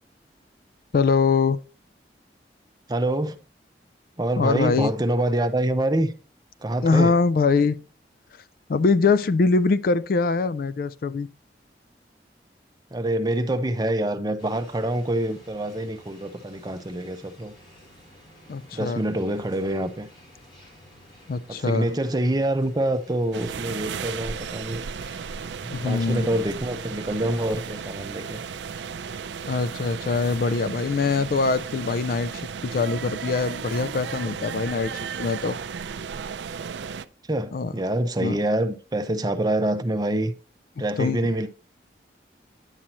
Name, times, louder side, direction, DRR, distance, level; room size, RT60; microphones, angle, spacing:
voice 1, 0.9-1.6 4.4-4.9 6.8-7.8 8.7-11.3 18.5-19.0 21.3-21.9 25.7-26.4 29.5-34.9 35.2-35.6 37.5-37.7 38.2-38.4 41.0-41.3, left 4 dB, 55° left, 0.3 m, -23 dB
voice 2, 2.9-3.4 4.2-6.1 6.6-7.2 12.9-17.5 18.7-20.1 21.5-24.8 25.6-28.4 37.2-40.3 40.8-41.5, right 1 dB, 25° right, 0.6 m, -26 dB
sound 1, 14.4-32.1, left 1 dB, 30° left, 2.6 m, -52 dB
sound 2, 23.3-37.0, right 6 dB, 85° right, 0.4 m, -34 dB
9.8 x 7.5 x 2.9 m
head